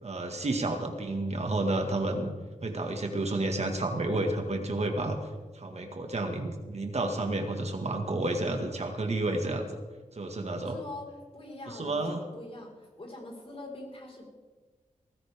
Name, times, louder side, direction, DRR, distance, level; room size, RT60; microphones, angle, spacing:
voice 1, 0.0-2.3 2.6-5.2 5.5-9.6 10.1-10.8 11.7-12.3, right 2 dB, 50° right, 4 dB, 2.0 m, -30 dB
voice 2, 10.6-14.3, left 2 dB, 45° left, -1 dB, 5.1 m, -43 dB
19.5 x 14.5 x 3.7 m, 1.3 s
cardioid pair, 60°, 14 cm